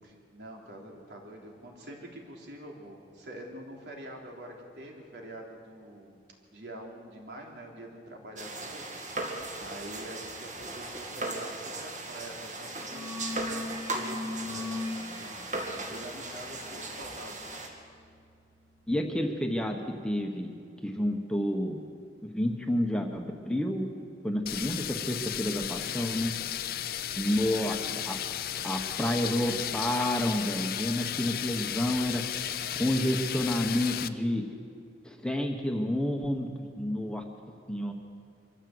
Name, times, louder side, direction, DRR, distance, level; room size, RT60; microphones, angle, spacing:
voice 1, 0.0-6.1 6.5-8.8 9.6-15.4 15.8-17.4 27.4-28.2, right 1 dB, 75° right, 0 dB, 3.5 m, -46 dB
sound 1, 8.4-17.7, right 2 dB, 40° right, 2.4 m, -38 dB
sound 2, 12.1-12.4 12.6-19.3, left 2 dB, 25° right, 1.3 m, -41 dB
voice 2, 18.9-20.5 20.8-21.8 22.2-23.9 24.2-26.3 27.2-27.8 28.0-28.2 28.6-32.2 32.7-34.5 35.0-37.2 37.7-37.9, left 1 dB, 5° left, 2 dB, 1.2 m, -29 dB
sound 3, 24.5-34.1, left 10 dB, 55° left, 0.6 m, -34 dB
24.0 x 14.5 x 8.0 m, 2.3 s
head